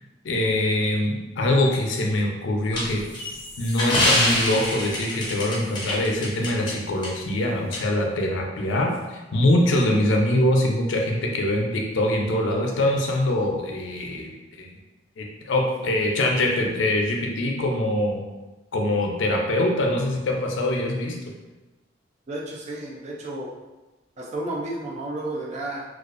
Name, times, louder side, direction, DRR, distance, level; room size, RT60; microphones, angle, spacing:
voice 1, 0.2-3.0 3.6-14.7 15.2-18.2 18.7-21.2, left 1 dB, 85° left, 1 dB, 0.5 m, -23 dB
sound 1, 2.7-6.7 7.0-7.1 7.7-7.8, left 1 dB, 25° left, 0.6 m, -25 dB
voice 2, 22.3-23.5 24.2-25.8, right 2 dB, 40° right, -2 dB, 0.4 m, -32 dB
2.5 x 2.3 x 2.4 m, 1.1 s
head